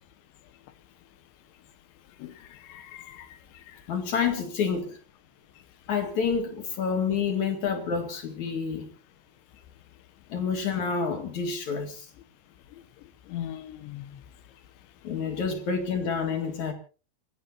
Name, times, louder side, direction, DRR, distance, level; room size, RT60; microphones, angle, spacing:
voice 1, 2.2-3.4 3.7-3.8 13.3-14.2, left 11 dB, 85° left, 3.7 m, -40 dB
voice 2, 3.9-5.0 5.9-8.9 10.3-12.1 15.0-16.7, left 6 dB, 50° left, 3.0 m, -28 dB
28.5 x 16.0 x 2.7 m
omnidirectional pair, 5.0 m